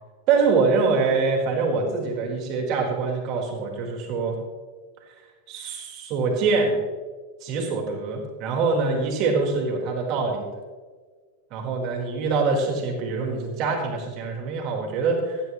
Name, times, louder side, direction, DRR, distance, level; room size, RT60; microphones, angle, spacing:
voice 1, 0.3-4.4 5.1-5.2 5.5-6.8 7.4-10.4 11.5-15.4, right 4 dB, 40° right, 1 dB, 4.2 m, -24 dB
16.5 x 15.0 x 3.1 m, 1.5 s
figure-of-eight pair, 90°, 0 cm